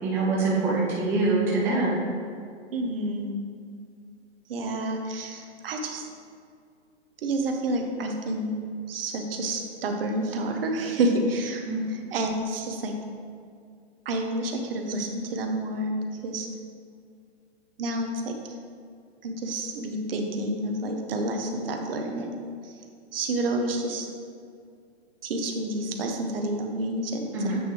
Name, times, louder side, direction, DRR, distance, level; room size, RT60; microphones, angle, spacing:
voice 1, 0.0-2.0 11.7-12.0 27.3-27.6, right 3 dB, 5° right, -6 dB, 0.5 m, -25 dB
voice 2, 2.7-3.3 4.5-6.1 7.2-8.6 8.9-12.9 14.0-15.9 16.2-16.5 17.8-18.5 19.2-22.4 22.6-22.7 23.1-24.1 25.2-27.3, right 1 dB, 55° right, 3 dB, 1.0 m, -29 dB
8.1 x 6.0 x 3.1 m, 2.3 s
hypercardioid pair, 155°, 34 cm